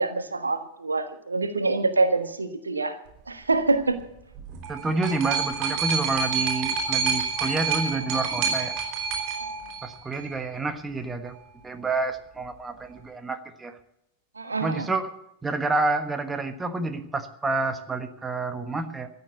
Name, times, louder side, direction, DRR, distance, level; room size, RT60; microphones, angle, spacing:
voice 1, 0.0-3.0 3.3-4.0 14.4-14.9, right 3 dB, 80° right, 1.3 m, -25 dB
sound 1, 4.4-10.4 11.3-11.4, right 5 dB, 40° right, 4.3 m, -28 dB
voice 2, 4.7-8.8 9.8-11.4 11.6-13.8 14.6-15.2 15.4-19.1, right 3 dB, 10° right, 1.4 m, -29 dB
15.0 x 9.6 x 8.0 m
figure-of-eight pair, 90°, 0 cm